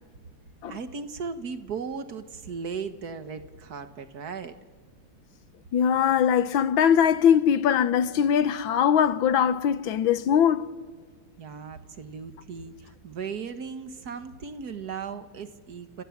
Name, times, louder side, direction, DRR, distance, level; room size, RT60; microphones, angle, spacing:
voice 1, 0.7-4.6 11.4-16.0, right 5 dB, 55° right, 1.8 m, -37 dB
voice 2, 5.7-10.7, left 8 dB, 90° left, 1.8 m, -21 dB
29.0 x 26.0 x 7.3 m
omnidirectional pair, 2.1 m